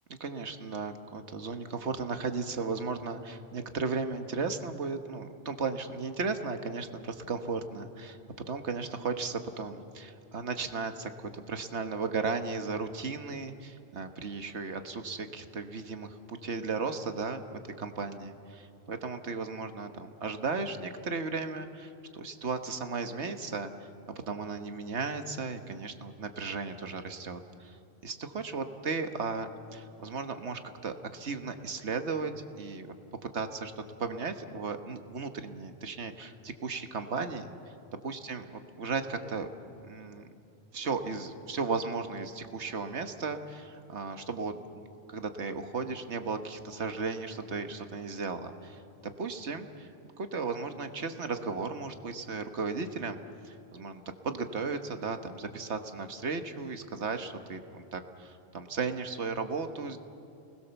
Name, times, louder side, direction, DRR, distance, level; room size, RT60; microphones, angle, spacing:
voice 1, 0.2-8.2 8.5-11.1 11.5-23.7 24.3-27.8 28.0-32.9 33.3-37.5 38.0-38.4 38.8-39.5 39.8-40.3 40.7-48.8 49.2-49.9 50.2-60.0, right 4 dB, 85° right, 7 dB, 1.6 m, -35 dB
29.5 x 20.0 x 7.1 m, 2.6 s
omnidirectional pair, 1.1 m